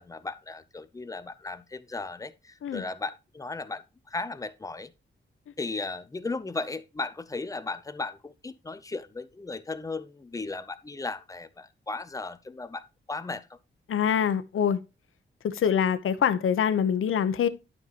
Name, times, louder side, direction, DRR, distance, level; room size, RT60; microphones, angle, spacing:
voice 1, 0.0-4.9 5.6-13.5, left 3 dB, 15° left, 0.5 m, -36 dB
voice 2, 13.9-14.8 15.4-17.5, left 8 dB, 85° left, 0.8 m, -25 dB
12.0 x 5.6 x 2.9 m
wide cardioid pair, 160°, 21 cm